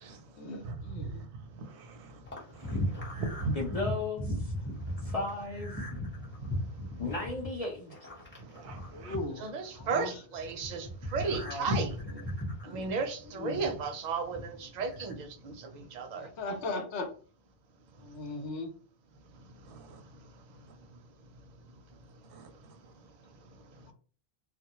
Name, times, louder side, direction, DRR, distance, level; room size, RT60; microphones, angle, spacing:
voice 1, 0.4-1.2 8.9-9.5 9.8-10.1 11.5-11.7 12.1-12.2 12.7-12.8 13.4-13.7 16.2-17.1 18.0-18.7, left 2 dB, 90° left, 0.9 m, -38 dB
voice 2, 1.6-2.1 2.5-3.6 8.5-9.2 19.7-20.0 22.3-22.5, right 3 dB, 90° right, 0.9 m, -39 dB
sound 1, 2.2-10.0 10.3-13.9 14.2-15.1, equal, 15° left, 0.6 m, -37 dB
voice 3, 3.5-4.5 5.0-5.7 7.0-7.8, left 3 dB, 55° left, 0.4 m, -34 dB
voice 4, 9.4-12.0 12.6-16.3, right 4 dB, 55° right, 0.5 m, -34 dB
2.2 x 2.0 x 2.8 m
omnidirectional pair, 1.1 m